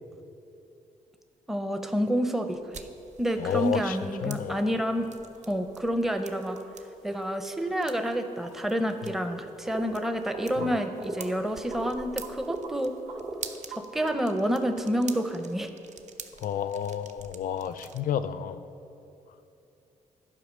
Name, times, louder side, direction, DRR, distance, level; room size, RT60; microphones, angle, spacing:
voice 1, 1.5-2.9 3.2-5.1 5.5-6.6 7.0-12.9 13.7-15.7, equal, ahead, 7 dB, 0.6 m, -29 dB
sound 1, 2.5-18.0, right 5 dB, 50° right, 0.6 m, -47 dB
voice 2, 3.4-4.0 4.2-4.7 10.6-10.7 16.4-18.6, left 9 dB, 70° left, 13 dB, 0.4 m, -31 dB
sound 2, 4.1-4.2 4.6-5.9 6.6-6.9 7.1-7.2 8.4-8.5 9.0-9.3 9.6-9.9 10.3-11.3 11.7-12.8 13.1-14.1, right 3 dB, 70° right, 1.7 m, -38 dB
11.0 x 4.8 x 6.2 m, 2.8 s
cardioid pair, 70°, 15 cm